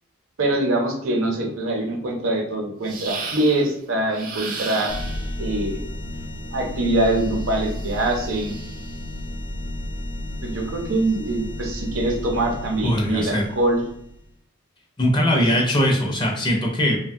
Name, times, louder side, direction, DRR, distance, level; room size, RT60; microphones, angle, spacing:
voice 1, 0.4-4.9 5.4-5.8 6.5-8.5 10.4-13.8 15.3-15.4, right 1 dB, 70° right, 1 dB, 0.6 m, -23 dB
sound 1, 2.9-3.7 4.1-5.4 7.1-9.0, right 4 dB, 40° right, 0.4 m, -35 dB
sound 2, 4.9-14.3, left 1 dB, 85° left, 0.7 m, -33 dB
voice 2, 12.8-13.4 15.0-17.0, equal, 20° left, 0 dB, 0.4 m, -20 dB
2.9 x 2.1 x 2.6 m, 0.73 s
head